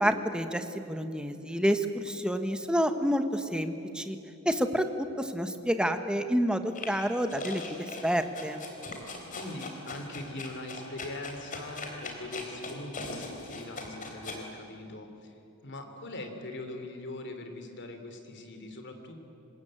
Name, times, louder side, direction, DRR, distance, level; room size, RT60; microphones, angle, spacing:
voice 1, 0.0-4.2 4.4-4.9 5.2-7.8 8.0-8.6, equal, 5° right, 8 dB, 1.3 m, -28 dB
sound 1, 6.7-14.4, left 3 dB, 40° left, 3.6 m, -40 dB
voice 2, 9.3-15.3 15.6-19.2, left 2 dB, 55° left, 6 dB, 3.1 m, -41 dB
25.5 x 21.0 x 9.1 m, 2.8 s
head